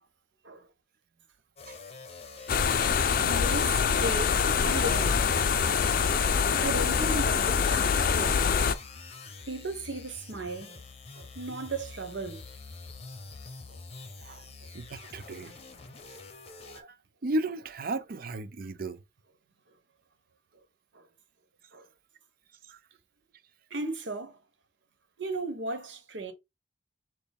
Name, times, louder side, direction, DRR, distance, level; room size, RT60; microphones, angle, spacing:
sound 1, 1.6-16.8, left 4 dB, 35° left, 0.8 m, -46 dB
sound 2, 2.5-8.8, left 6 dB, 50° left, 0.4 m, -25 dB
voice 1, 3.2-5.3 6.6-8.4 9.5-10.8 11.1-12.4 20.9-21.0 21.7-21.8 23.7-24.4 25.2-26.3, right 2 dB, 85° right, 1.1 m, -36 dB
voice 2, 14.7-15.5 16.6-17.0 17.2-19.0 22.7-22.8, right 2 dB, 50° right, 0.5 m, -35 dB
6.4 x 2.2 x 3.5 m
head